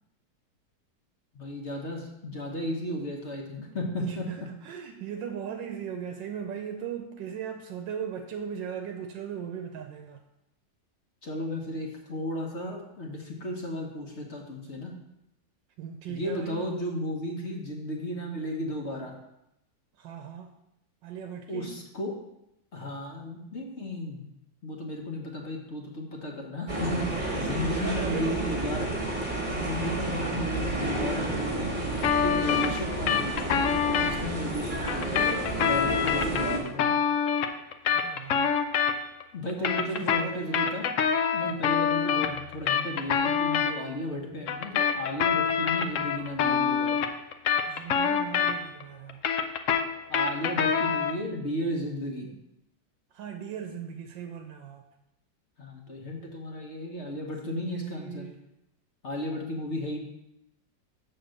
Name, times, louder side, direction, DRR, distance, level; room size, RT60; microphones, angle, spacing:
voice 1, 1.3-4.2 11.2-14.9 16.1-19.1 21.5-22.1 22.7-24.2 24.6-28.9 29.5-31.7 32.2-35.1 35.6-36.9 39.3-40.8 41.3-47.0 50.1-52.3 55.6-58.3 59.0-60.0, left 1 dB, 45° left, 0 dB, 1.2 m, -34 dB
voice 2, 4.0-10.2 15.8-16.6 20.0-20.5 21.0-21.8 27.4-28.8 29.8-30.2 36.6-37.0 37.9-38.5 39.6-40.7 42.0-42.2 47.7-49.2 50.5-50.9 53.1-54.9 57.4-58.3, right 8 dB, 85° right, 5 dB, 1.3 m, -39 dB
sound 1, 26.7-36.6, right 2 dB, 30° right, 1.4 m, -31 dB
sound 2, 32.0-34.1 34.9-39.2 39.5-43.7 44.5-48.8 49.1-51.2, left 7 dB, 80° left, 0.6 m, -26 dB
6.9 x 4.3 x 6.5 m, 0.85 s
omnidirectional pair, 2.0 m